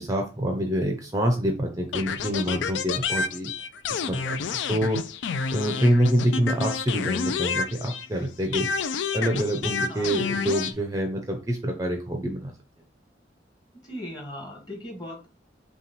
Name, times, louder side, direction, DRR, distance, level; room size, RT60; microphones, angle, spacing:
voice 1, 0.0-3.5 3.9-5.0 5.5-8.7 9.1-12.5, equal, 20° right, 4 dB, 0.5 m, -26 dB
sound 1, 1.9-8.2 8.5-10.7, left 5 dB, 85° left, 0.4 m, -29 dB
voice 2, 13.8-15.3, left 1 dB, 25° left, 0 dB, 1.4 m, -38 dB
5.6 x 2.3 x 3.0 m, 0.33 s
head